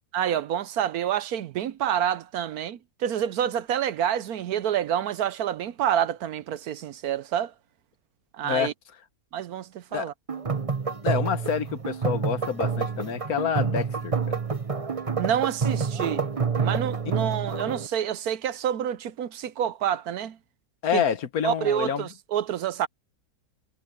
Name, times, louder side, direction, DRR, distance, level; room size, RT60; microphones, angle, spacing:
voice 1, 0.1-7.5 8.3-8.7 9.3-10.1 15.2-16.2 16.6-20.4 20.9-21.0 21.4-22.9, right 10 dB, 70° right, 1.1 m, -28 dB
sound 1, 10.3-17.9, right 5 dB, 25° right, 1.1 m, -28 dB
voice 2, 11.0-14.4 20.8-22.1, left 8 dB, 65° left, 1.4 m, -27 dB
omnidirectional pair, 1.8 m